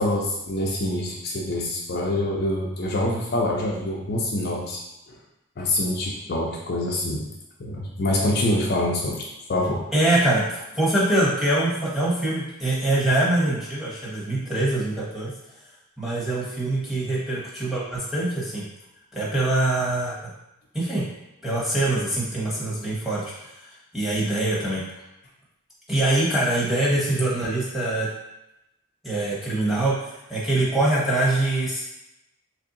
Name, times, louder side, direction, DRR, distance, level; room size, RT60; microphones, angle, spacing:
voice 1, 0.0-4.8 5.6-7.2 7.6-9.8, left 1 dB, 45° left, -2 dB, 0.4 m, -25 dB
voice 2, 9.9-15.3 16.0-18.6 19.1-20.2 20.7-21.0 21.4-24.8 25.9-28.1 29.0-31.8, right 1 dB, ahead, -7 dB, 0.9 m, -24 dB
3.1 x 2.6 x 3.8 m, 0.90 s
head